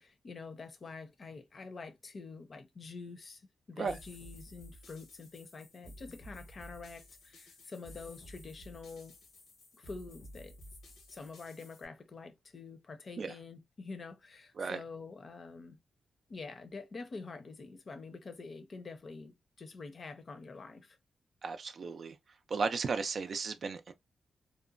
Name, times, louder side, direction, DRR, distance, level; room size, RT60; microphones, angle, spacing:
voice 1, 0.0-3.4 3.7-9.1 9.7-10.5 11.1-15.8 16.3-21.0, left 4 dB, 45° left, 0.6 m, -47 dB
sound 1, 3.8-11.8, left 1 dB, 90° left, 1.0 m, -53 dB
voice 2, 21.4-22.2 22.5-23.9, right 4 dB, 55° right, 0.3 m, -35 dB
2.8 x 2.1 x 2.4 m
cardioid pair, 90°, 0 cm